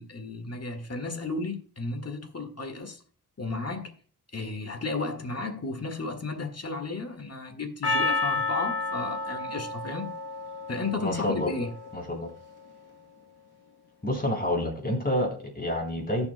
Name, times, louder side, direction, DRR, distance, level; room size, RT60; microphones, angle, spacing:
voice 1, 0.0-3.0 3.4-3.9 4.3-10.1 10.7-11.7, left 3 dB, 40° left, 1.8 m, -33 dB
Percussion, 7.8-12.3, left 3 dB, 90° left, 1.2 m, -31 dB
voice 2, 11.0-11.5 11.9-12.3 14.0-16.3, left 1 dB, 25° left, 3.5 m, -28 dB
16.5 x 7.1 x 2.2 m
wide cardioid pair, 110°, 38 cm